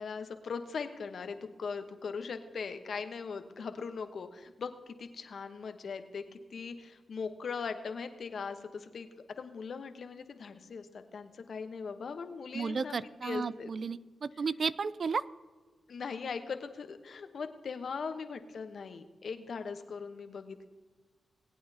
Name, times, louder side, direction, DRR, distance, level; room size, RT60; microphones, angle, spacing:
voice 1, 0.0-9.1 9.4-13.7 15.9-20.7, left 5 dB, 65° left, 8 dB, 1.0 m, -40 dB
voice 2, 12.5-15.2, right 5 dB, 60° right, 17 dB, 0.4 m, -33 dB
20.0 x 8.6 x 2.8 m, 1.3 s
cardioid pair, 50°, 0 cm